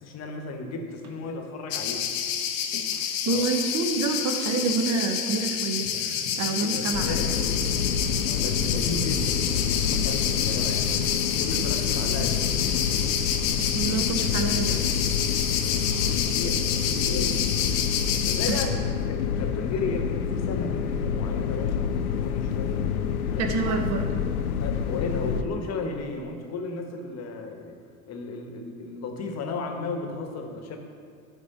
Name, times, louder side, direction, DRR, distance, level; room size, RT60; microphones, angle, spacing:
voice 1, 0.0-2.1 3.3-3.4 6.6-10.9 11.4-12.5 15.8-17.4 18.2-22.9 23.3-23.8 24.6-27.8 28.1-30.8, left 3 dB, 35° left, 4 dB, 1.1 m, -35 dB
Tap, 1.0-1.2 1.8-2.0 2.7-3.0 3.3-3.5 3.9-4.1 4.5-4.7 5.3-5.5 5.9-6.2 6.6-6.9 7.4-7.7 8.1-8.3 8.7-9.0 9.4-9.6 10.3-10.5 11.0-11.2 12.2-12.5 13.6-13.8 14.6-14.8 15.2-15.4 15.7-16.0, equal, 80° right, 1.1 m, -43 dB
sound 1, 1.7-18.7, left 9 dB, 60° left, 0.8 m, -28 dB
voice 2, 3.1-7.2 13.7-14.8 18.5-18.6 23.4-24.0, right 4 dB, 40° right, 5 dB, 0.9 m, -27 dB
sound 2, 6.9-25.4, left 7 dB, 80° left, 0.5 m, -28 dB
10.5 x 3.7 x 4.1 m, 2.3 s
hypercardioid pair, 75°, 44 cm